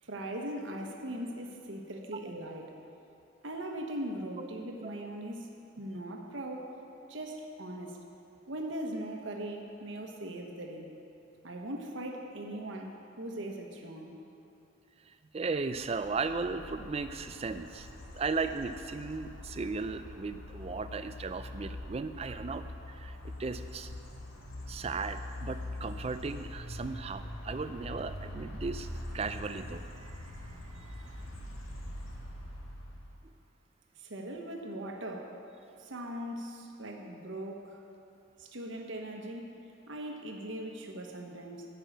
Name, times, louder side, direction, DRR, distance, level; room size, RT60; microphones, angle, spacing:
voice 1, 0.1-2.8 3.4-6.7 7.1-8.0 8.5-10.9 11.4-14.2 34.0-35.3 35.8-37.8 38.4-39.5 39.9-41.7, right 1 dB, 65° right, 2 dB, 1.1 m, -40 dB
voice 2, 15.3-17.9 18.1-23.9 24.7-28.9 29.1-30.2 31.0-31.1, right 4 dB, 30° right, 10 dB, 0.3 m, -36 dB
sound 1, 15.7-33.2, left 1 dB, 75° left, 1.7 m, -44 dB
11.0 x 5.6 x 8.5 m, 2.8 s
head